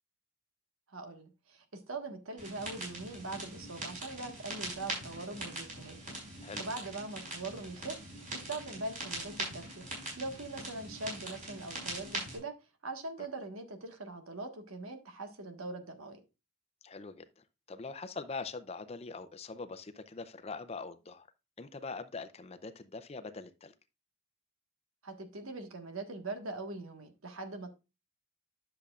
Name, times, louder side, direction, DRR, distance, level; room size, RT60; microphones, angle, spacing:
voice 1, 0.9-6.0 6.3-8.0 8.3-9.8 10.2-12.5 12.8-16.2 25.0-27.8, right 2 dB, 85° right, 1.5 m, -42 dB
sound 1, 2.4-12.4, right 2 dB, 40° right, 4.7 m, -42 dB
voice 2, 16.8-21.3 21.6-23.7, left 4 dB, 30° left, 0.5 m, -43 dB
10.5 x 6.8 x 2.4 m
head